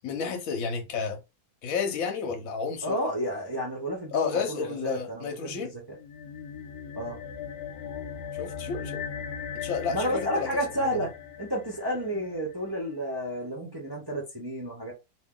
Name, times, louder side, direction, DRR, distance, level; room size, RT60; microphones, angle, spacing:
voice 1, 0.0-1.2 1.6-3.0 4.1-5.7 8.3-9.0 9.5-10.5 10.9-11.0 12.1-12.2, left 6 dB, 55° left, 1.1 m, -31 dB
voice 2, 2.8-6.0 6.9-7.2 9.9-11.1 11.4-14.9, equal, 30° right, 0.4 m, -31 dB
sound 1, 5.9-12.6, left 7 dB, 75° left, 0.8 m, -39 dB
2.9 x 2.7 x 3.7 m
omnidirectional pair, 2.0 m